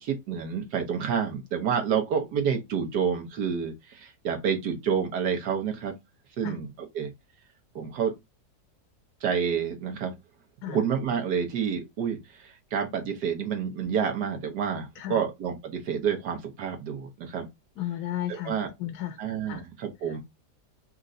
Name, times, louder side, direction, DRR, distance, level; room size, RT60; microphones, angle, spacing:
voice 1, 0.0-5.9 6.4-7.1 7.7-8.1 9.2-10.1 10.7-17.5 18.4-18.7 19.2-20.2, right 7 dB, 80° right, 1.5 m, -29 dB
voice 2, 17.8-18.5 18.8-19.2 19.4-19.6 20.1-20.2, left 12 dB, 75° left, 1.2 m, -33 dB
4.3 x 2.5 x 3.8 m
omnidirectional pair, 1.7 m